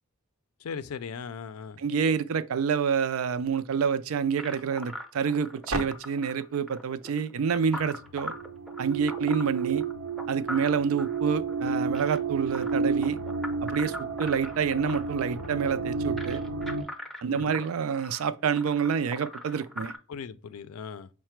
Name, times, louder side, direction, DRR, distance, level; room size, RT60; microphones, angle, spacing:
voice 1, 0.6-1.8 17.3-17.6 19.8-21.1, left 6 dB, 90° left, 0.4 m, -39 dB
voice 2, 1.8-8.3 8.8-9.8 10.3-13.2 13.6-16.4 17.2-19.9, right 6 dB, 75° right, 0.4 m, -28 dB
sound 1, 4.4-20.0, left 1 dB, ahead, 0.5 m, -41 dB
sound 2, 5.7-5.8 7.7-16.8, right 5 dB, 90° right, 0.9 m, -32 dB
5.6 x 2.1 x 4.4 m
head